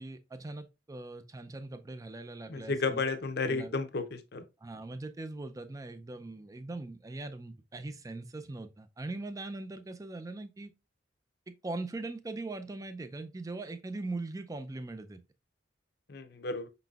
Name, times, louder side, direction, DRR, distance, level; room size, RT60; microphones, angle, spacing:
voice 1, 0.0-3.0 3.4-3.7 4.6-10.7 11.5-15.2, right 2 dB, 20° right, 0.4 m, -41 dB
voice 2, 2.5-4.4 16.1-16.7, left 3 dB, 60° left, 0.6 m, -32 dB
5.6 x 3.9 x 2.3 m
head